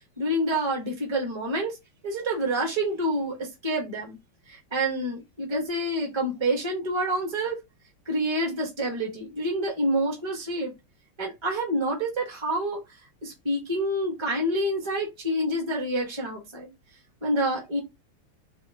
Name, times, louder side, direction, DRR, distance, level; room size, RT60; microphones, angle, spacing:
voice 1, 0.2-1.8 2.0-4.2 4.5-7.6 8.0-10.7 11.2-12.8 13.2-16.7 17.2-17.8, right 1 dB, 15° right, 1.3 m, -27 dB
4.3 x 3.2 x 3.7 m
omnidirectional pair, 2.4 m